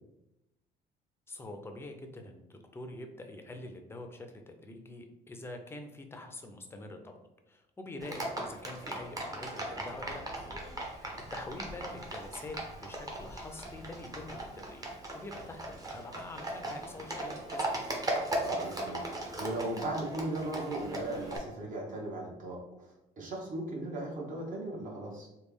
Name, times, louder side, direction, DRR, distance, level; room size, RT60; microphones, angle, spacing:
voice 1, 1.3-7.2 7.5-10.3 10.8-14.8 15.1-17.7, left 2 dB, 15° left, 5 dB, 0.5 m, -45 dB
Livestock farm animals working animals, 8.0-21.4, right 1 dB, 20° right, 0.7 m, -38 dB
voice 2, 18.4-25.3, right 1 dB, 50° right, -2 dB, 1.1 m, -37 dB
3.2 x 2.3 x 3.4 m, 0.91 s
cardioid pair, 110°, 17 cm